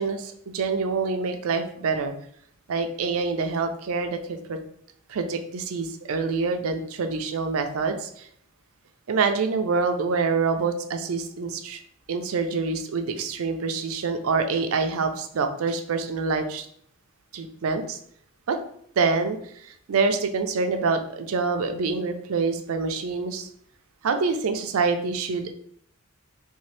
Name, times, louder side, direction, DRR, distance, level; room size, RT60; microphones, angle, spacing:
voice 1, 0.0-2.1 2.7-4.6 5.1-8.3 9.1-11.8 12.1-16.7 17.3-18.0 18.5-18.6 19.0-23.5 24.0-25.5, right 4 dB, 80° right, 6 dB, 0.5 m, -26 dB
3.3 x 2.7 x 3.2 m, 0.66 s
head